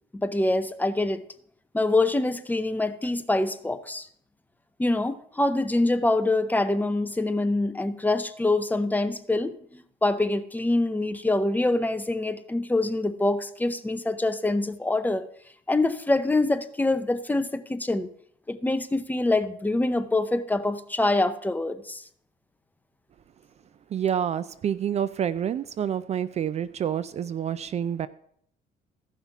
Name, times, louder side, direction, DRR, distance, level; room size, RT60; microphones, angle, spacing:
voice 1, 0.1-1.2 1.7-4.1 4.8-15.3 15.7-18.1 18.5-22.0, left 2 dB, 10° left, 10 dB, 0.6 m, -25 dB
voice 2, 23.9-28.1, right 9 dB, 40° right, 15 dB, 0.4 m, -28 dB
15.5 x 5.7 x 3.5 m, 0.64 s
cardioid pair, 110°, 17 cm